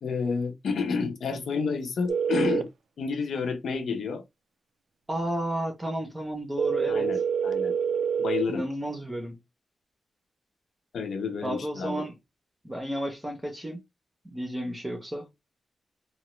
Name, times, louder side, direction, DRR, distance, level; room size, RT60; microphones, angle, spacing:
voice 1, 0.0-2.7 3.0-4.2 6.9-7.7 8.2-8.6 10.9-12.0, left 5 dB, 75° left, 0.7 m, -30 dB
sound 1, 2.1-2.6 6.6-8.4, right 7 dB, 75° right, 0.3 m, -26 dB
voice 2, 5.1-7.1 8.5-9.4 11.4-12.1 12.6-13.8 14.2-15.3, right 1 dB, 15° right, 0.6 m, -32 dB
3.1 x 2.1 x 3.0 m
wide cardioid pair, 165°, 0 cm